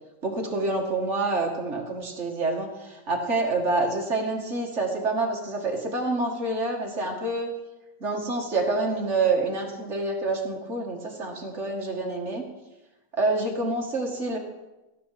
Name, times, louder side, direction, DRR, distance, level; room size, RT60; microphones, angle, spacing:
voice 1, 0.2-7.5 8.0-12.4 13.2-14.4, right 2 dB, 30° right, 0 dB, 1.5 m, -27 dB
15.0 x 9.7 x 5.8 m, 1.0 s
omnidirectional pair, 3.7 m